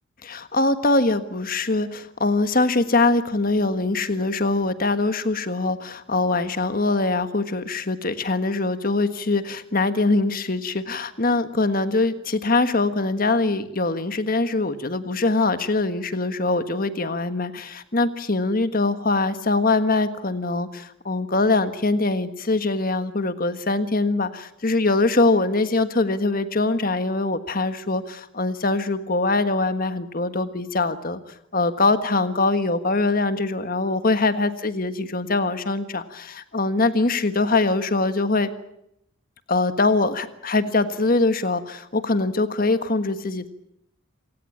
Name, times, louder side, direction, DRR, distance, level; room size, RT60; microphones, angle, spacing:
voice 1, 0.2-31.2 31.5-38.5 39.5-43.5, left 3 dB, 40° left, 11 dB, 1.5 m, -23 dB
27.5 x 18.0 x 8.7 m, 0.80 s
head